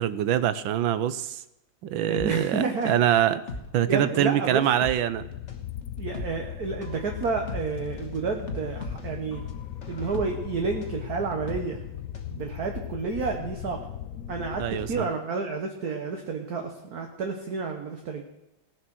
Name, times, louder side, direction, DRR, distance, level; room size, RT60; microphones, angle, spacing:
voice 1, 0.0-1.4 1.8-3.4 3.7-5.2 14.6-15.1, right 11 dB, 80° right, 14 dB, 1.5 m, -24 dB
sound 1, 2.1-12.4 12.7-12.8, left 2 dB, 40° left, 1.5 m, -40 dB
voice 2, 2.1-2.9 3.9-4.6 6.0-9.4 9.9-11.8 12.3-13.8 14.3-18.2, right 4 dB, 55° right, 2 dB, 1.6 m, -30 dB
sound 2, 5.1-15.0, left 10 dB, 90° left, 0.7 m, -38 dB
18.0 x 7.4 x 6.1 m, 0.91 s
omnidirectional pair, 2.2 m